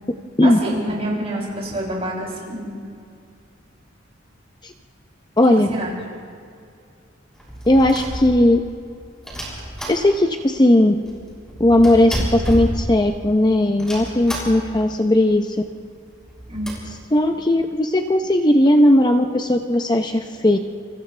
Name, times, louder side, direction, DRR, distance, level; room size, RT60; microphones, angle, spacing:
voice 1, 0.4-2.7 5.4-5.9 16.5-16.7, right 1 dB, 35° right, -4 dB, 7.3 m, -27 dB
voice 2, 5.4-5.7 7.7-8.6 9.9-10.9 11.6-15.6 17.1-20.6, left 1 dB, 20° left, 5 dB, 0.7 m, -17 dB
sound 1, 7.4-8.7 9.2-10.5 10.8-10.9 11.1-13.3 13.8-14.9 15.2-15.3 15.5-15.6 16.1-16.7, equal, 5° left, 6.2 m, -29 dB
29.0 x 27.5 x 3.3 m, 2.3 s
head